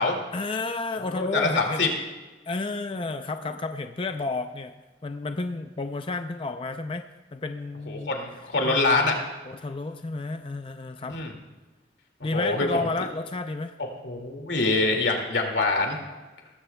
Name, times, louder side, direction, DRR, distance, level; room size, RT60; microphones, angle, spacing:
voice 1, 0.3-1.9 2.5-4.7 5.0-8.2 8.6-8.8 9.4-11.2 12.2-13.8, left 3 dB, 30° left, 7 dB, 0.4 m, -31 dB
voice 2, 1.1-1.9 7.9-9.2 11.1-11.3 12.3-12.7 14.0-16.0, left 3 dB, 85° left, 3 dB, 2.3 m, -24 dB
19.0 x 15.0 x 2.3 m, 1.2 s
head